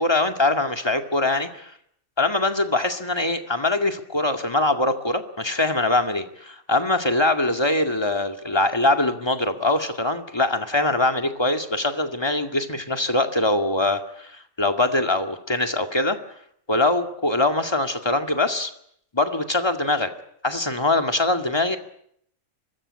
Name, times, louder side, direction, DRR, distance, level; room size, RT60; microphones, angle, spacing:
voice 1, 0.0-1.7 2.2-16.2 16.7-18.7 19.1-20.1 20.4-21.8, left 2 dB, 20° left, 6 dB, 2.2 m, -23 dB
25.0 x 21.0 x 9.9 m, 0.71 s
omnidirectional pair, 1.3 m